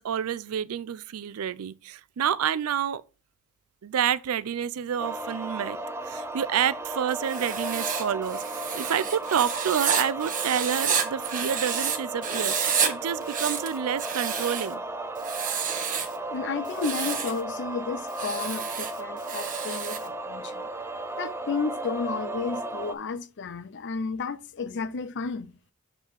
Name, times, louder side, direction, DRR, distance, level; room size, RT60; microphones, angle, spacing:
voice 1, 0.0-3.0 3.8-5.8 6.0-14.8, right 8 dB, 85° right, 0.4 m, -29 dB
sound 1, 5.0-23.0, right 2 dB, 10° right, 0.5 m, -35 dB
Writing, 7.2-12.0 12.2-12.9 13.2-14.7 15.2-16.2 16.7-17.4 18.1-20.1, right 7 dB, 40° right, 1.0 m, -30 dB
voice 2, 16.3-20.7 21.2-25.5, left 4 dB, 55° left, 0.5 m, -32 dB
7.2 x 4.0 x 4.5 m
head